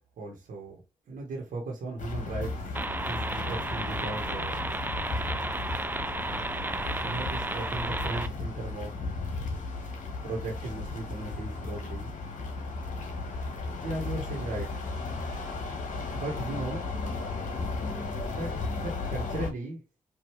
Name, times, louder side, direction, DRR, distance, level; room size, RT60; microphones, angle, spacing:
voice 1, 0.2-0.8 1.1-2.7 3.0-4.7 7.0-9.1 10.2-12.1 13.8-14.8 16.1-16.9 18.3-18.5 18.8-19.8, right 2 dB, 75° right, 1.3 m, -36 dB
sound 1, 2.0-19.5, left 3 dB, 65° left, 1.2 m, -35 dB
sound 2, 2.7-8.3, right 2 dB, 15° right, 0.5 m, -33 dB
4.7 x 2.7 x 3.1 m
supercardioid pair, 45°, 14 cm